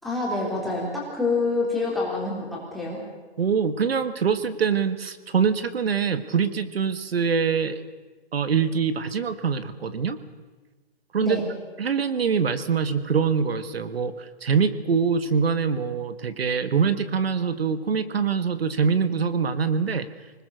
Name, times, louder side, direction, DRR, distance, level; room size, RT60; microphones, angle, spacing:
voice 1, 0.0-3.0 11.2-11.4, left 3 dB, ahead, -3 dB, 3.3 m, -27 dB
voice 2, 3.4-7.8 8.3-10.2 11.1-11.4 11.8-14.1 14.4-20.1, right 6 dB, 65° right, 12 dB, 1.8 m, -24 dB
26.5 x 20.0 x 6.5 m, 1.3 s
hypercardioid pair, 165°, 32 cm